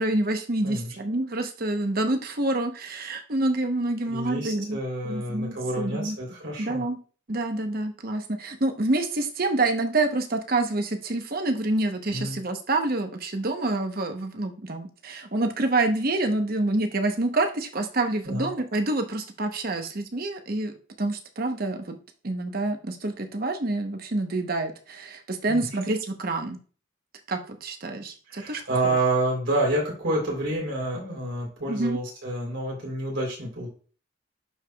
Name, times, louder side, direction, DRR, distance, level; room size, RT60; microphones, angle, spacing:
voice 1, 0.0-4.8 5.0-6.2 6.6-7.0 7.3-20.7 21.0-22.0 22.2-26.6 27.3-29.0 31.7-32.0, right 2 dB, 45° right, 6 dB, 0.9 m, -27 dB
voice 2, 4.1-6.8 12.1-12.4 18.2-18.5 25.5-25.7 28.3-33.7, right 1 dB, 65° right, -2 dB, 3.5 m, -28 dB
11.0 x 4.7 x 2.3 m, 0.38 s
head